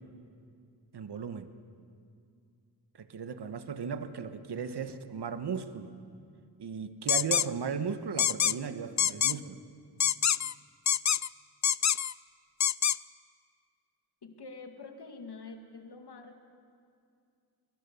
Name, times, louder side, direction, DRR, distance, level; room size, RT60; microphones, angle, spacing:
voice 1, 0.9-1.5 3.0-5.9 6.6-9.6, right 6 dB, 75° right, 10 dB, 1.3 m, -36 dB
sound 1, 7.1-7.5 8.2-8.5 9.0-9.3 10.0-10.5 10.9-11.3 11.6-12.1 12.6-13.0, left 9 dB, 45° left, 0.5 m, -25 dB
voice 2, 14.2-16.4, left 3 dB, 75° left, 5 dB, 2.2 m, -46 dB
22.5 x 20.5 x 6.9 m, 2.3 s
cardioid pair, 45°, 40 cm